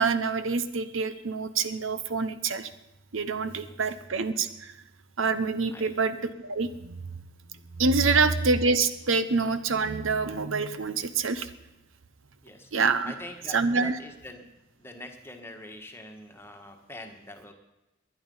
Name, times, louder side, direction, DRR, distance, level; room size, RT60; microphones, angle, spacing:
voice 1, 0.0-2.7 3.1-4.7 5.2-7.1 7.8-11.5 12.7-13.1 13.5-14.0, right 4 dB, 75° right, 12 dB, 0.9 m, -26 dB
voice 2, 8.0-8.3 12.4-12.7 13.0-14.5 14.8-17.5, left 1 dB, 10° left, 4 dB, 1.6 m, -44 dB
20.0 x 11.0 x 5.6 m, 0.97 s
head